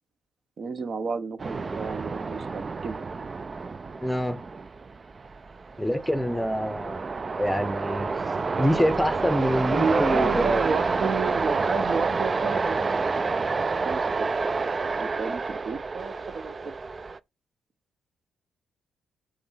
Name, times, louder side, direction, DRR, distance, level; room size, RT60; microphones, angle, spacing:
voice 1, 0.6-3.0 9.7-13.0 13.4-16.5, right 5 dB, 50° right, 1.0 m, -31 dB
sound 1, 1.4-17.2, right 4 dB, 30° right, 0.4 m, -28 dB
voice 2, 4.0-4.4 5.8-7.0 7.4-8.1 8.6-10.6, equal, 5° left, 0.8 m, -26 dB
8.6 x 3.2 x 5.6 m
cardioid pair, 90°, 0 cm